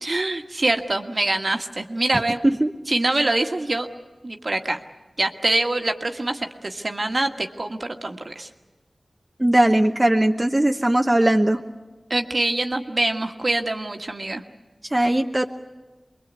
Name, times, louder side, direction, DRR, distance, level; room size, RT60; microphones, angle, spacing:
voice 1, 0.0-2.4 2.9-3.9 4.2-4.8 5.2-8.5 12.1-14.4, right 2 dB, 55° right, 5 dB, 1.7 m, -24 dB
voice 2, 9.4-11.6 14.9-15.4, right 1 dB, 25° right, 3 dB, 1.1 m, -19 dB
25.5 x 22.0 x 8.3 m, 1.1 s
cardioid pair, 40°, 0 cm